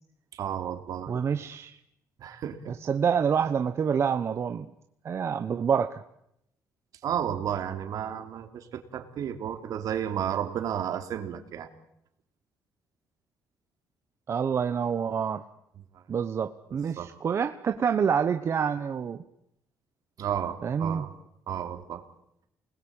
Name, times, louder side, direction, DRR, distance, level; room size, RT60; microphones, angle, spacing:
voice 1, 0.3-1.1 2.2-2.8 7.0-11.7 15.9-16.0 17.0-17.1 20.2-21.1 21.5-22.0, right 9 dB, 65° right, 6 dB, 3.3 m, -32 dB
voice 2, 1.1-1.8 2.9-4.7 5.0-6.0 14.3-15.4 16.1-19.2 20.6-21.0, right 7 dB, 40° right, 7 dB, 1.1 m, -27 dB
28.5 x 20.5 x 9.0 m, 0.80 s
cardioid pair, 125°, 7 cm